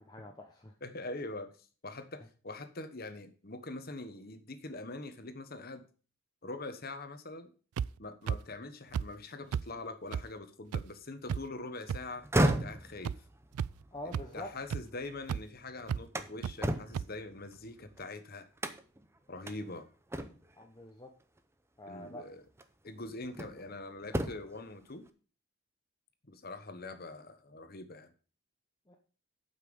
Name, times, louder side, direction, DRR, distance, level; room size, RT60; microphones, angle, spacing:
voice 1, 0.0-0.7 13.9-14.5 20.6-21.1 21.8-22.2 28.9-29.0, left 1 dB, 20° left, 2 dB, 0.9 m, -45 dB
voice 2, 0.8-5.9 6.4-7.5 8.0-12.2 12.5-13.1 14.0-18.5 19.3-19.9 21.9-22.4 22.8-25.1 26.3-28.1, left 2 dB, 45° left, 9 dB, 1.2 m, -43 dB
sound 1, 7.8-7.9 8.3-8.4 8.9-9.0 9.5-9.6 10.1-10.2 10.7-10.8 11.3-11.4 11.9-12.0 12.5-12.6 13.0-13.1 13.5-13.8 14.1-14.2 14.7-14.8 15.3-15.4 15.9-16.0 16.4-16.5 16.9-17.0, right 7 dB, 90° right, 0.3 m, -32 dB
sound 2, 12.1-15.2 15.6-18.0 18.6-19.1 19.5-19.6 20.1-20.6 21.9-22.0 22.6-23.7 24.0-24.6, right 1 dB, 10° right, 0.6 m, -34 dB
8.4 x 5.9 x 7.0 m, 0.39 s
head